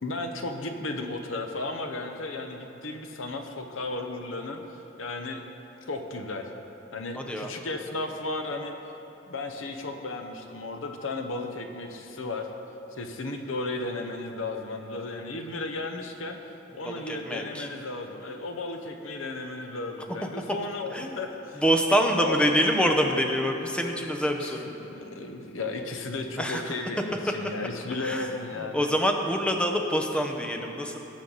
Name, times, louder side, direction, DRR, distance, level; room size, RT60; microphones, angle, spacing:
voice 1, 0.0-5.4 5.8-6.4 6.9-8.7 9.2-12.5 12.9-16.4 16.7-21.6 22.2-22.4 24.4-28.9, left 2 dB, 85° left, 5 dB, 0.9 m, -34 dB
voice 2, 7.1-7.5 16.8-17.7 20.2-20.6 20.9-21.2 21.6-24.7 26.4-26.7 27.3-27.4 27.9-28.3 28.7-31.0, equal, 5° left, 3 dB, 0.7 m, -26 dB
18.0 x 6.4 x 4.0 m, 3.0 s
head